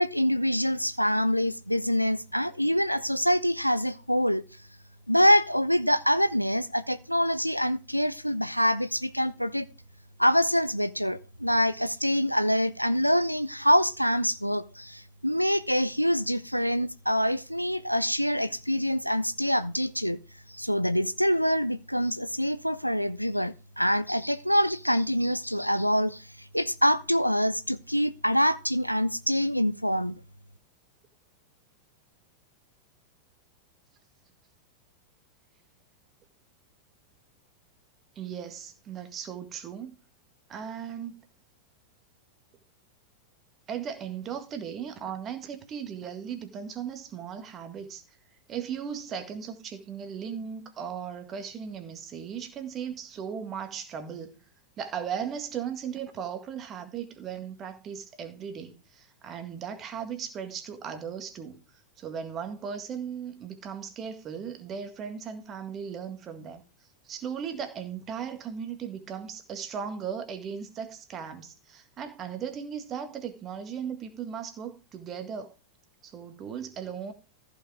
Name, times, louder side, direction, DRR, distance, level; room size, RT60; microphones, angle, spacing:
voice 1, 0.0-4.4 5.1-9.7 10.2-20.2 20.5-30.2, equal, 90° left, 0.6 m, -25 dB
voice 2, 38.2-40.0 40.5-41.2 43.7-48.0 48.5-54.4 54.8-61.7 62.0-66.6 67.0-75.5 76.0-77.1, right 7 dB, 30° right, 1.8 m, -37 dB
14.5 x 5.4 x 4.8 m
figure-of-eight pair, 90°, 0 cm